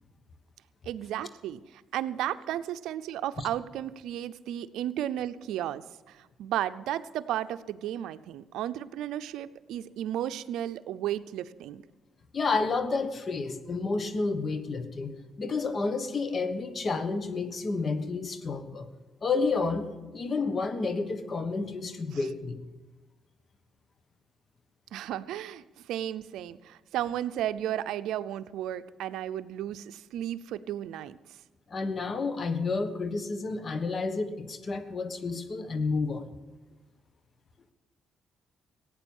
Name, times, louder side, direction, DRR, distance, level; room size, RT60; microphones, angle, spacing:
voice 1, 0.8-11.8 22.1-22.3 24.9-31.2, right 11 dB, 85° right, 13 dB, 0.5 m, -34 dB
voice 2, 12.3-18.9 19.2-19.9 20.1-22.6 31.7-36.3, left 4 dB, 40° left, 10 dB, 1.3 m, -30 dB
16.5 x 9.0 x 7.2 m, 1.2 s
cardioid pair, 90°, 0 cm